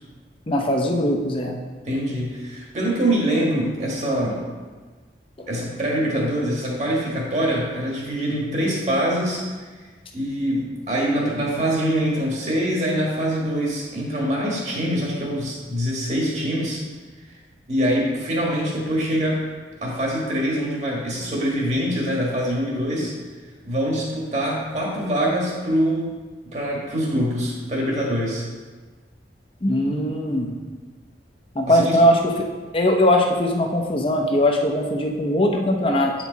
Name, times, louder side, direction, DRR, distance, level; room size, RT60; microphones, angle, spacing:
voice 1, 0.5-1.6 29.6-30.5 31.6-32.2 32.7-36.1, left 1 dB, 30° left, 2 dB, 0.7 m, -20 dB
voice 2, 1.8-4.4 5.5-9.4 10.1-16.8 17.7-19.4 19.8-23.1 23.6-26.1 26.5-28.4 31.7-32.0, equal, 40° right, -3 dB, 1.6 m, -24 dB
8.5 x 4.6 x 4.0 m, 1.4 s
head